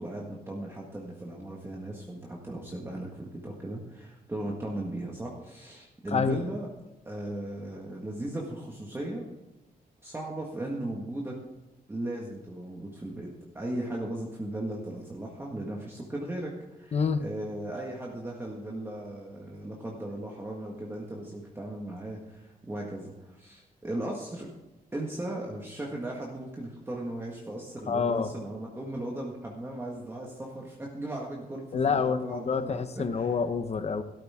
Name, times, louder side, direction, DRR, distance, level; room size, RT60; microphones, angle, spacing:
voice 1, 0.0-6.7 7.1-9.3 10.0-11.4 11.9-13.3 13.5-24.5 24.9-33.3, right 1 dB, 15° right, -2 dB, 1.7 m, -37 dB
voice 2, 6.1-6.4 16.9-17.3 27.9-28.3 31.7-34.0, left 5 dB, 45° left, 10 dB, 0.9 m, -27 dB
13.0 x 13.0 x 3.7 m, 1.1 s
wide cardioid pair, 140°, 15 cm